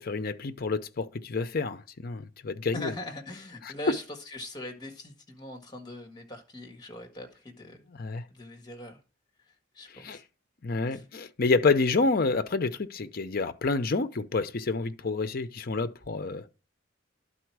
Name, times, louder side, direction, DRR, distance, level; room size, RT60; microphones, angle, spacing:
voice 1, 0.0-2.9 3.6-3.7 7.9-8.2 9.9-10.2 10.6-16.4, left 3 dB, 55° left, 0.6 m, -28 dB
voice 2, 2.7-7.9 8.3-9.0 9.4-10.2 10.9-11.0, left 1 dB, 25° left, 1.8 m, -41 dB
11.5 x 4.2 x 4.7 m
head